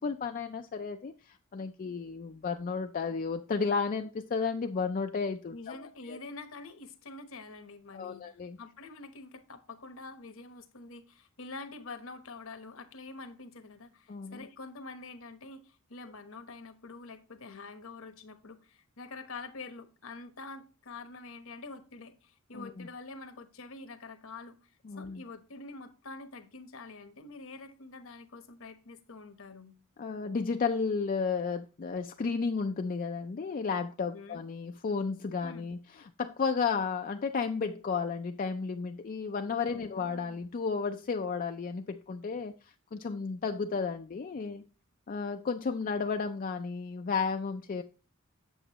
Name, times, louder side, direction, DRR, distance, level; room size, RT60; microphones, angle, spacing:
voice 1, 0.0-6.2 7.9-8.6 14.1-14.5 22.5-22.9 24.9-25.2 30.0-44.6 45.1-47.8, left 5 dB, 40° left, 0.4 m, -33 dB
voice 2, 5.5-24.7 25.0-29.7 34.1-34.4 35.4-35.7 39.7-40.4, left 3 dB, 65° left, 1.0 m, -46 dB
8.0 x 7.3 x 2.9 m
head